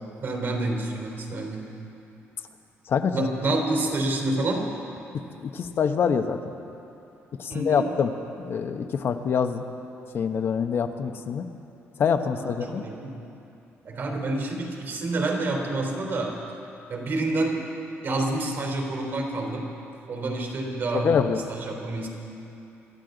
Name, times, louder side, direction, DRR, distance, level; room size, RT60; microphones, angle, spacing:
voice 1, 0.2-1.7 3.1-4.7 7.5-7.9 12.4-13.2 13.8-16.4 16.9-17.7 18.0-19.8 20.1-21.1 21.5-22.1, right 2 dB, 55° right, 1 dB, 3.6 m, -28 dB
voice 2, 2.9-3.3 5.4-6.4 7.4-8.1 8.4-9.6 10.1-11.4 12.0-12.8 20.9-21.4, left 6 dB, 50° left, 7 dB, 0.9 m, -25 dB
26.0 x 13.5 x 3.9 m, 2.8 s
cardioid pair, 125°, 5 cm